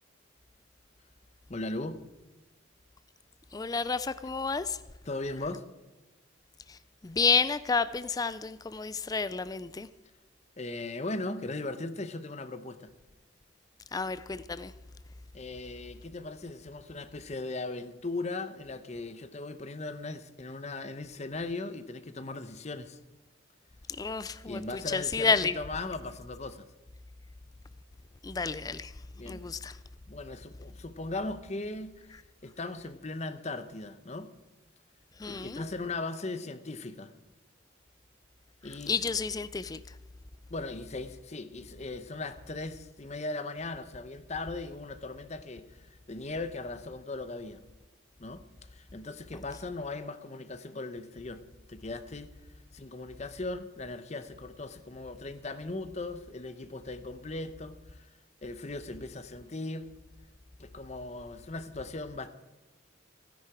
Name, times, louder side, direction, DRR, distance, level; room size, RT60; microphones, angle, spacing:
voice 1, 1.5-2.0 5.0-5.6 10.6-12.9 15.3-23.0 24.5-26.7 29.2-29.4 30.1-32.1 32.4-34.3 35.3-37.1 38.6-39.0 40.5-45.7 46.1-47.6 48.2-48.4 48.7-51.4 51.7-52.3 52.7-58.0 58.4-59.9 60.6-62.3, left 2 dB, 35° left, 0.8 m, -38 dB
voice 2, 3.5-4.8 6.7-6.8 7.0-9.9 13.9-14.7 24.0-24.6 24.9-25.5 28.2-28.9 29.3-29.7 35.2-35.6 38.9-39.8, left 5 dB, 20° left, 0.3 m, -30 dB
16.0 x 10.5 x 4.9 m
head